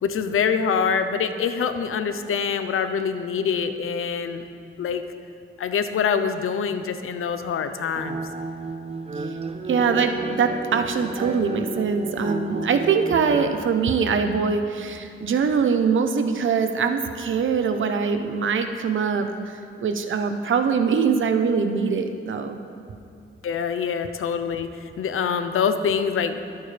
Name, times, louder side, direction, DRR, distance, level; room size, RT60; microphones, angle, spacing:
voice 1, 0.0-4.4 4.8-5.0 5.6-8.2 23.4-26.4, left 6 dB, 80° left, 9 dB, 0.8 m, -25 dB
sound 1, 7.9-13.6, right 3 dB, 30° right, 0.6 m, -32 dB
voice 2, 9.7-22.6, right 5 dB, 65° right, 7 dB, 1.0 m, -23 dB
22.5 x 9.2 x 3.4 m, 2.6 s
wide cardioid pair, 145°, 21 cm